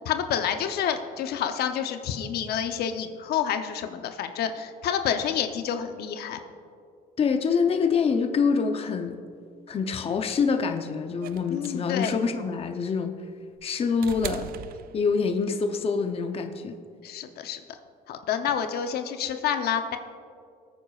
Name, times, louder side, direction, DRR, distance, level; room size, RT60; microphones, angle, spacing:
voice 1, 0.0-6.4 11.5-12.1 17.0-17.6 18.1-20.0, left 8 dB, 70° left, 7 dB, 0.7 m, -28 dB
voice 2, 7.2-9.2 9.7-13.1 13.6-14.5 14.9-16.8, left 5 dB, 35° left, 6 dB, 0.7 m, -25 dB
sound 1, 11.2-15.5 16.7-16.8, right 11 dB, 60° right, 0.4 m, -41 dB
20.5 x 9.1 x 2.4 m, 2.3 s
cardioid pair, 110°, 17 cm